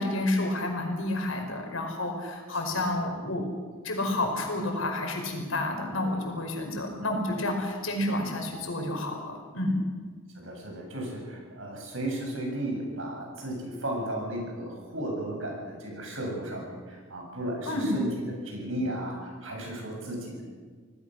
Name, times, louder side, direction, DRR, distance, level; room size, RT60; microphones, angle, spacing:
voice 1, 0.0-3.4 3.8-9.8 17.6-17.9, left 1 dB, 80° left, 3 dB, 5.1 m, -30 dB
voice 2, 10.4-18.1 18.4-20.4, right 1 dB, 70° right, 0 dB, 7.6 m, -34 dB
27.0 x 18.5 x 6.6 m, 1.5 s
head